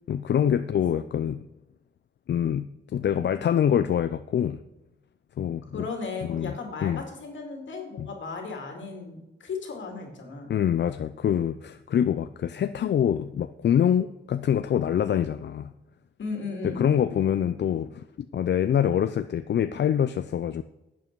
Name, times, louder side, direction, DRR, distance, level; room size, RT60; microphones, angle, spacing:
voice 1, 0.1-1.5 2.3-4.6 5.4-5.9 6.2-6.5 6.8-7.0 8.0-8.1 10.5-15.7 16.6-18.0 18.3-20.6, left 9 dB, 70° left, 11 dB, 0.4 m, -25 dB
voice 2, 5.7-10.5 16.2-16.9, left 4 dB, 90° left, 2 dB, 2.5 m, -35 dB
11.0 x 7.4 x 4.6 m, 0.97 s
wide cardioid pair, 95°, 19 cm